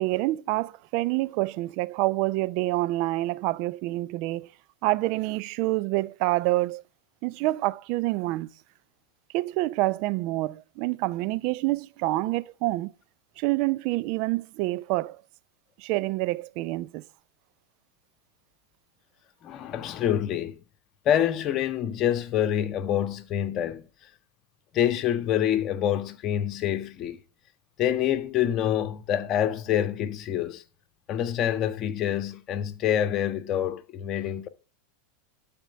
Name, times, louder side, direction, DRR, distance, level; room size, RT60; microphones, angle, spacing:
voice 1, 0.0-4.5 4.8-6.8 7.2-8.5 9.3-12.9 13.4-15.2 15.8-17.0, right 19 dB, 55° right, 0.5 m, -27 dB
voice 2, 19.4-20.6 21.0-23.8 24.7-27.2 27.8-30.6 31.1-34.5, left 10 dB, 40° left, 1.3 m, -26 dB
12.0 x 4.5 x 8.2 m
hypercardioid pair, 100°, 0 cm